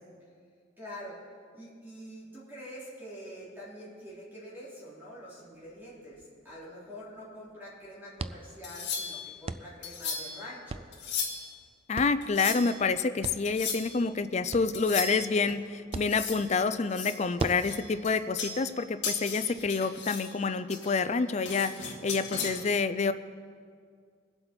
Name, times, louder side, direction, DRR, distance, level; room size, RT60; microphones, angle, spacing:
voice 1, 0.8-1.2 1.5-10.8, equal, 10° right, -8 dB, 3.3 m, -45 dB
sound 1, 5.5-19.7, right 3 dB, 30° right, 0.3 m, -44 dB
sound 2, 8.6-9.3 9.8-10.4 10.9-11.5 12.2-12.8 13.4-13.9 14.7-15.5 15.9-16.4 16.8-18.8 19.0-20.3 20.7-22.5, left 5 dB, 65° left, 2.4 m, -36 dB
voice 2, 11.9-23.1, left 4 dB, 35° left, 12 dB, 0.4 m, -28 dB
22.5 x 7.9 x 4.4 m, 2.1 s
head